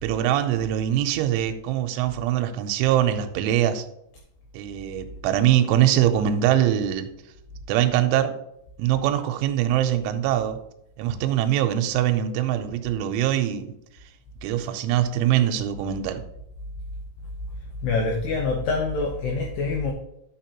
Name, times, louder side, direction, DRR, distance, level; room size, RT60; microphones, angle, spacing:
voice 1, 0.0-3.9 4.5-7.1 7.7-8.3 8.8-10.6 11.0-13.7 14.4-16.2, right 11 dB, 80° right, 7 dB, 2.9 m, -23 dB
voice 2, 17.8-19.9, left 3 dB, 85° left, 1 dB, 2.4 m, -25 dB
11.0 x 6.5 x 2.9 m, 0.79 s
omnidirectional pair, 5.8 m